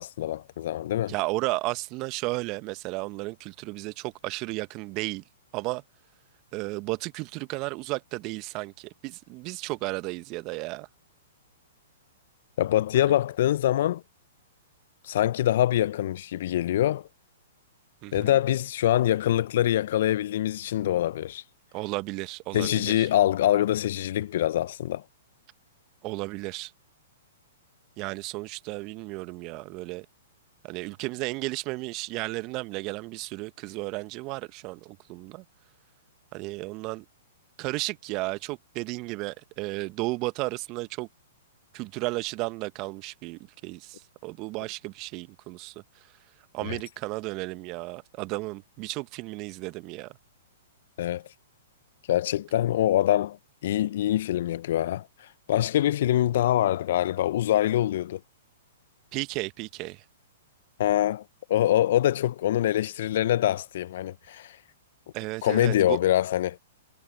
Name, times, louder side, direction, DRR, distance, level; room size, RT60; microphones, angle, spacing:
voice 1, 0.0-1.1 12.6-14.0 15.0-17.1 18.1-21.4 22.5-25.0 46.6-46.8 51.0-51.2 52.1-53.4 53.6-55.1 55.5-58.2 60.8-61.2 61.5-64.6 65.4-66.6, left 12 dB, 55° left, 0.6 m, -24 dB
voice 2, 1.1-5.2 5.5-5.8 6.5-10.9 13.0-13.2 18.0-18.4 21.7-23.1 26.0-26.7 28.0-30.0 30.6-35.4 36.3-37.0 37.6-41.1 41.7-45.8 46.5-50.1 59.1-60.0 65.1-66.0, right 23 dB, 35° right, 1.2 m, -33 dB
figure-of-eight pair, 115°, 0 cm